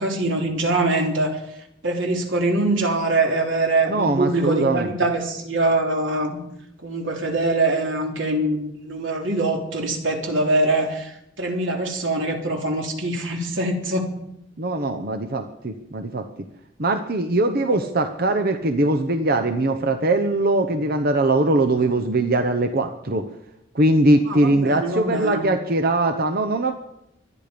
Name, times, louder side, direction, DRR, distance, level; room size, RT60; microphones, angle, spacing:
voice 1, 0.0-1.4 1.8-6.4 6.8-11.1 11.4-14.1 24.3-25.4, right 2 dB, 85° right, 1 dB, 3.5 m, -23 dB
voice 2, 3.9-4.9 14.6-16.3 16.8-23.3 23.7-26.7, right 2 dB, 50° right, 7 dB, 0.9 m, -21 dB
24.5 x 10.5 x 5.2 m, 0.82 s
head